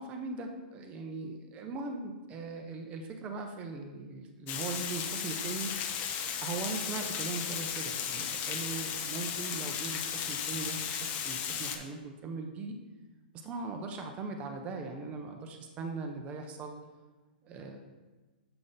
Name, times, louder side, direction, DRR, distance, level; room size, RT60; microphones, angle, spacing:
voice 1, 0.0-5.7 6.4-12.8 13.3-16.8 17.4-17.8, right 3 dB, 25° right, 4 dB, 0.6 m, -39 dB
Water, 4.5-11.8, left 8 dB, 30° left, 0.6 m, -35 dB
7.7 x 3.7 x 3.9 m, 1.2 s
hypercardioid pair, 145°, 5 cm